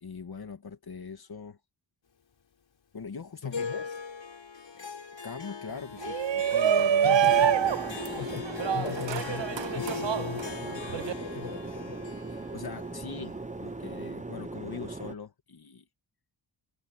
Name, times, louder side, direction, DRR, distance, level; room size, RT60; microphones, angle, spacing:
voice 1, 0.0-1.6 2.9-3.9 4.7-7.2 12.5-15.9, left 5 dB, 55° left, 2.5 m, -42 dB
voice 2, 3.4-4.0 6.1-6.2 7.0-12.0, left 7 dB, 90° left, 7.2 m, -41 dB
Harp, 3.5-14.1, left 6 dB, 75° left, 6.6 m, -40 dB
Shout, 6.0-11.1, right 9 dB, 75° right, 0.9 m, -26 dB
sound 1, 7.2-15.1, right 3 dB, 15° right, 1.1 m, -39 dB
wide cardioid pair, 100°, 44 cm